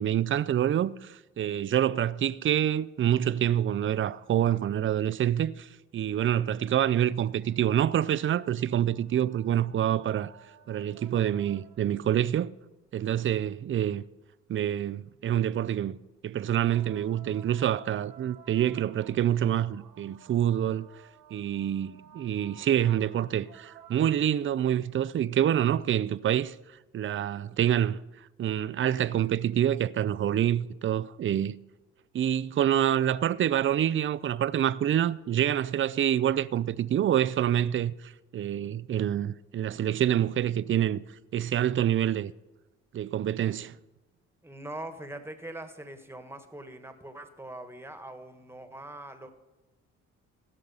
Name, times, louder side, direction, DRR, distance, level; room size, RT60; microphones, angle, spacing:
voice 1, 0.0-10.3 10.7-12.5 12.9-14.0 14.5-16.0 16.2-20.9 21.3-26.5 26.9-28.0 28.4-31.5 32.1-41.0 41.3-42.3 42.9-43.8, right 10 dB, 40° right, 0.5 m, -27 dB
sound 1, 7.3-12.1 16.4-24.7 26.0-26.1, right 8 dB, 75° right, 1.0 m, -55 dB
voice 2, 44.4-49.3, right 1 dB, 10° right, 1.5 m, -42 dB
16.5 x 6.5 x 5.5 m
supercardioid pair, 65°, 30 cm